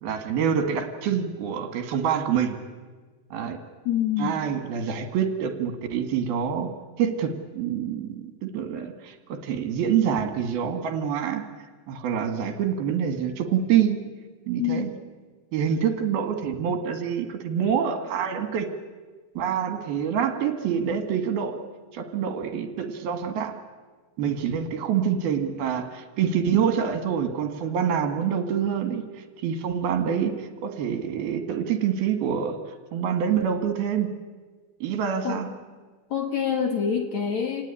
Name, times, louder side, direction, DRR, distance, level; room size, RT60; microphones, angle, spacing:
voice 1, 0.0-2.6 3.3-3.6 4.2-6.7 7.0-11.4 11.9-14.0 14.5-14.9 15.5-18.7 19.4-21.6 21.9-23.6 24.2-34.1 34.8-35.5, right 8 dB, 65° right, 8 dB, 3.5 m, -26 dB
voice 2, 3.9-4.4 14.6-14.9 35.2-35.4 36.1-37.6, left 8 dB, 50° left, 6 dB, 2.5 m, -26 dB
28.0 x 18.5 x 10.0 m, 1.4 s
omnidirectional pair, 4.9 m